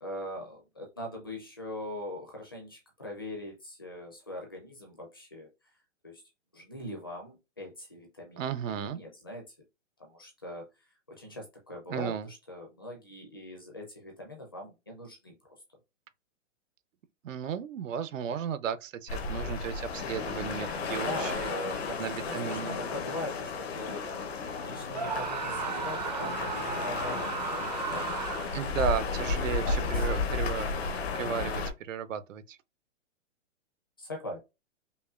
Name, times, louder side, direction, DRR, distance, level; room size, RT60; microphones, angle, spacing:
voice 1, 0.0-5.5 6.0-6.2 6.5-9.4 10.0-10.7 11.1-15.4 21.0-28.6 29.6-30.3 34.0-34.4, left 1 dB, 20° left, 0.5 m, -42 dB
voice 2, 8.4-9.0 11.9-12.3 17.2-21.5 22.0-22.8 28.5-30.7 31.1-32.6, right 8 dB, 85° right, 0.7 m, -34 dB
sound 1, 19.1-31.7, left 4 dB, 55° left, 0.9 m, -33 dB
Screaming, 24.9-28.7, right 5 dB, 35° right, 0.4 m, -35 dB
5.3 x 2.2 x 2.4 m
hypercardioid pair, 180°, 37 cm